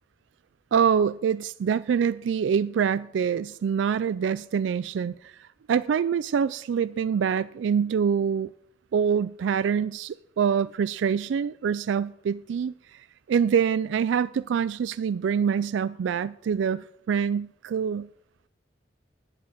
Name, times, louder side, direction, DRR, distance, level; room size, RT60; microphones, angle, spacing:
voice 1, 0.7-5.3 5.7-8.5 8.9-12.7 13.3-18.1, right 7 dB, 85° right, 0.3 m, -25 dB
10.0 x 7.3 x 7.4 m
head